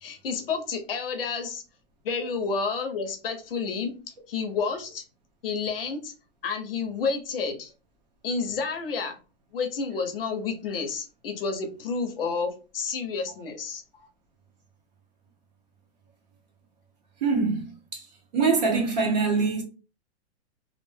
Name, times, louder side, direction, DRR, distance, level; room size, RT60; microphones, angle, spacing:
voice 1, 0.0-1.6 2.0-3.9 4.3-5.0 5.4-6.1 6.4-7.7 8.2-9.2 9.5-13.8, left 5 dB, 55° left, 0.7 m, -30 dB
voice 2, 17.2-18.1 18.3-19.6, right 4 dB, 40° right, 0.7 m, -24 dB
2.3 x 2.2 x 3.2 m
hypercardioid pair, 180°, 34 cm